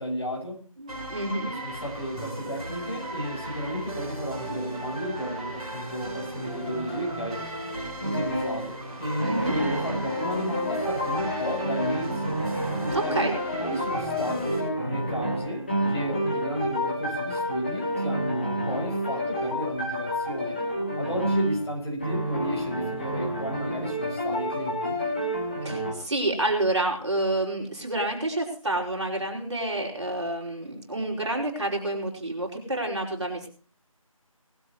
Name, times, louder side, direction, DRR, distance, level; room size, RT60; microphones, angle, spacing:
voice 1, 0.0-0.6 1.3-7.5 8.0-12.4 12.8-13.3 13.6-20.6 21.0-25.0, equal, 45° left, 0 dB, 6.6 m, -33 dB
voice 2, 0.8-1.5 9.2-9.6 12.9-13.3 25.6-33.5, right 1 dB, 50° right, 0 dB, 5.4 m, -28 dB
sound 1, 0.9-14.6, right 2 dB, 10° right, 6.3 m, -36 dB
sound 2, 8.0-8.7 9.2-21.7 22.0-25.9, equal, 15° left, 2.7 m, -29 dB
20.0 x 13.0 x 3.1 m, 0.40 s
figure-of-eight pair, 175°, 18 cm